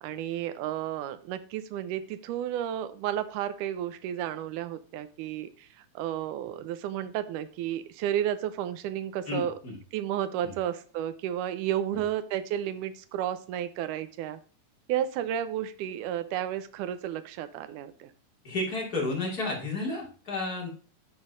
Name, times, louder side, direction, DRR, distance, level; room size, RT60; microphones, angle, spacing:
voice 1, 0.0-5.7 6.0-9.5 9.9-14.4 14.9-18.1, right 11 dB, 75° right, 12 dB, 2.1 m, -32 dB
voice 2, 9.3-9.8 10.4-10.5 11.9-12.0 18.4-20.7, left 2 dB, 30° left, -2 dB, 2.4 m, -32 dB
10.5 x 3.9 x 5.1 m, 0.39 s
omnidirectional pair, 3.9 m